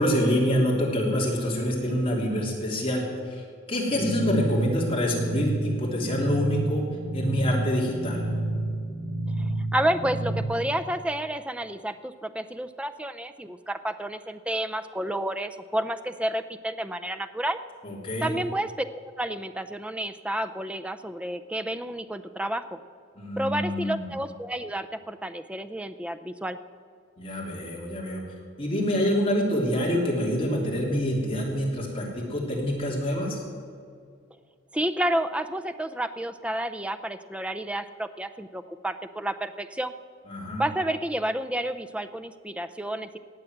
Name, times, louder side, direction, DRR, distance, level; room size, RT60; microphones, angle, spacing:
voice 1, 0.0-6.8 7.1-8.3 17.8-18.3 23.2-24.0 27.2-28.2 28.6-33.4 40.3-40.6, equal, 25° left, -3 dB, 3.2 m, -26 dB
sound 1, 3.9-10.4, right 2 dB, 25° right, 3.3 m, -30 dB
voice 2, 9.4-17.6 18.2-22.8 23.4-26.6 34.7-39.9 40.6-43.2, right 1 dB, 5° right, 9 dB, 0.5 m, -30 dB
18.5 x 7.3 x 7.9 m, 2.2 s
head